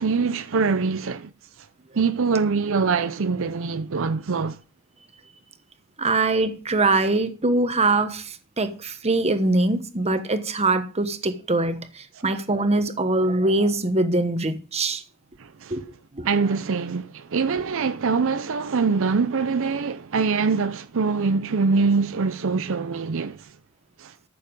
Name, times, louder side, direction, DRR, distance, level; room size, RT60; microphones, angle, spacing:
voice 1, 0.0-1.3 1.6-1.7 1.9-4.6 12.1-12.3 15.4-15.9 16.2-23.5 24.0-24.1, right 4 dB, 65° right, 0.6 m, -24 dB
voice 2, 6.0-15.0 15.7-15.8 16.1-16.3, right 2 dB, 30° right, 1.2 m, -23 dB
14.0 x 6.9 x 5.3 m
head